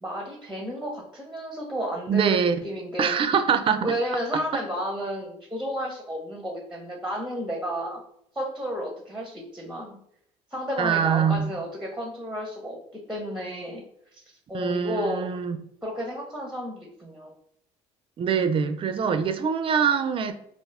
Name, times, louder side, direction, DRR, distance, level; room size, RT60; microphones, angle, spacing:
voice 1, 0.0-3.2 3.8-8.0 8.3-10.0 10.5-13.8 14.1-14.2 14.5-15.3 15.8-17.3 18.3-18.8, equal, 5° right, -1 dB, 0.6 m, -32 dB
voice 2, 2.1-2.6 3.0-3.9 4.3-4.6 10.8-11.5 14.5-15.6 18.2-20.3, right 7 dB, 35° right, 9 dB, 0.4 m, -24 dB
2.4 x 2.3 x 3.4 m, 0.73 s
supercardioid pair, 85°, 15 cm